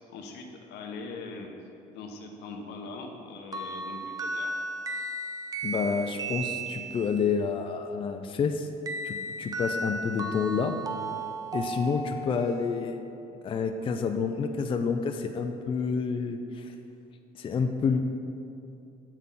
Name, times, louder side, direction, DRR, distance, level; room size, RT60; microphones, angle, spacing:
voice 1, 0.1-1.5 1.9-4.5, left 3 dB, 80° left, 2 dB, 0.9 m, -41 dB
sound 1, 3.5-7.3 8.9-12.6, right 2 dB, 20° right, 0.5 m, -35 dB
voice 2, 5.6-8.7 9.0-10.8 11.5-13.0 13.4-16.7 17.4-18.0, left 5 dB, 30° left, 6 dB, 0.4 m, -29 dB
7.1 x 5.7 x 3.7 m, 2.7 s
cardioid pair, 110°, 17 cm